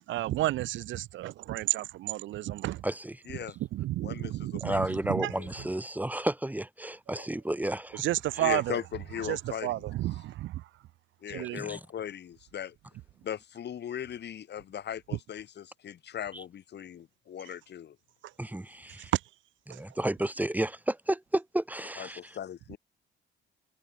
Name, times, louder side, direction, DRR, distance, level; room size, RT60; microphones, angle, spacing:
voice 1, 0.1-2.8 3.7-5.3 7.9-8.8 9.2-10.6 11.3-11.6 19.1-19.2 19.7-19.8, right 15 dB, 75° right, 0.5 m, -31 dB
voice 2, 2.8-3.2 4.6-8.0 11.5-11.8 16.3-16.4 18.4-19.1 19.7-22.4, right 1 dB, 10° right, 1.1 m, -32 dB
voice 3, 4.0-4.8 5.4-5.5 8.4-9.9 11.2-12.8 13.2-18.0 22.0-22.8, left 9 dB, 60° left, 1.9 m, -38 dB
cardioid pair, 90°, 20 cm